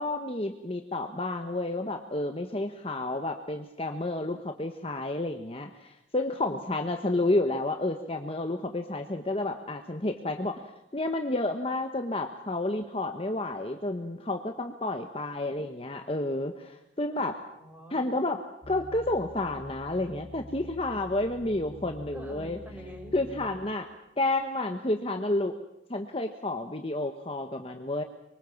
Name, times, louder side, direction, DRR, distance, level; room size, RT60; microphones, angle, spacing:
voice 1, 0.0-10.6 10.9-17.4 17.9-18.4 18.7-22.6 23.1-23.9 24.2-25.5 25.9-28.0, left 2 dB, 30° left, 5 dB, 1.2 m, -30 dB
voice 2, 17.4-18.2 22.1-23.2, equal, 10° right, 2 dB, 5.6 m, -46 dB
sound 1, 18.6-23.8 24.4-24.5, left 1 dB, 30° right, 2.6 m, -46 dB
25.0 x 23.0 x 7.2 m, 0.87 s
head